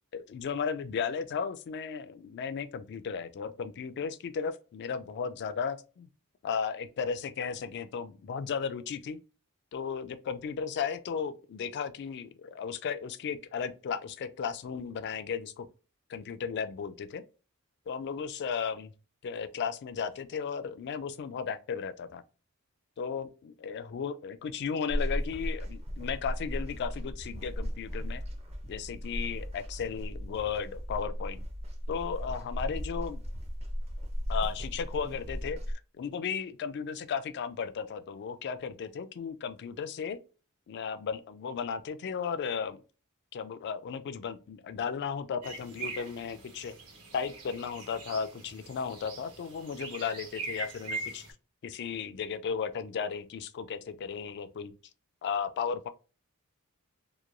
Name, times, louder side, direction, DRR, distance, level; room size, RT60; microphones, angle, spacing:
voice 1, 0.1-6.1 6.4-9.2 9.7-15.7 16.1-17.2 17.9-18.9 19.2-22.2 23.0-28.2 28.7-31.4 31.9-33.2 34.3-35.6 36.0-40.2 40.7-42.8 43.3-46.8 47.1-51.2 51.6-54.7 55.2-55.9, left 6 dB, 50° left, 0.3 m, -35 dB
sound 1, 24.9-35.7, equal, 30° right, 0.5 m, -36 dB
sound 2, 45.4-51.3, right 3 dB, 85° right, 1.2 m, -42 dB
2.9 x 2.2 x 2.4 m
head